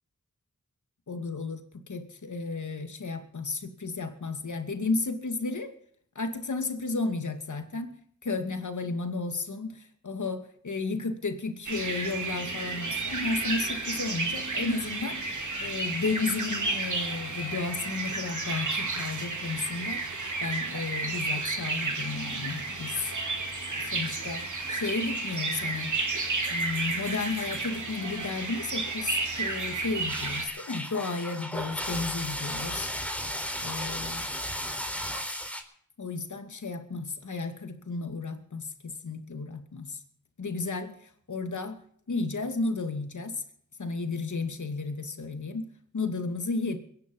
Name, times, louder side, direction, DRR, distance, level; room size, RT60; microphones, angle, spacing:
voice 1, 1.1-5.7 6.2-7.9 8.2-20.0 20.4-23.1 23.8-25.9 26.5-32.9 33.6-34.3 36.0-40.0 40.4-41.8 42.1-43.4 43.8-46.8, left 3 dB, 75° left, 6 dB, 2.5 m, -33 dB
sound 1, 11.7-30.5, right 3 dB, 75° right, 4.3 m, -32 dB
sound 2, 30.1-35.6, equal, 5° left, 4.1 m, -34 dB
23.0 x 10.5 x 5.5 m, 0.63 s
cardioid pair, 40°, 30 cm